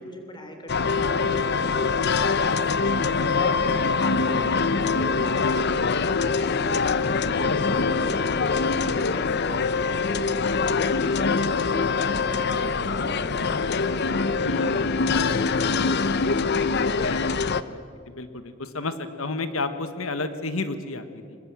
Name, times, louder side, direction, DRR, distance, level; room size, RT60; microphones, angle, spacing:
voice 1, 0.0-2.0 2.5-12.6 12.8-17.4, left 1 dB, 20° left, 5 dB, 3.2 m, -42 dB
sound 1, 0.7-17.6, left 4 dB, 55° left, 0.7 m, -24 dB
Bowed string instrument, 7.3-11.7, left 2 dB, ahead, 3.8 m, -53 dB
voice 2, 11.6-12.2 14.4-15.0 17.0-17.8 18.1-21.4, left 3 dB, 85° left, 10 dB, 1.4 m, -32 dB
24.5 x 21.5 x 7.6 m, 2.3 s
head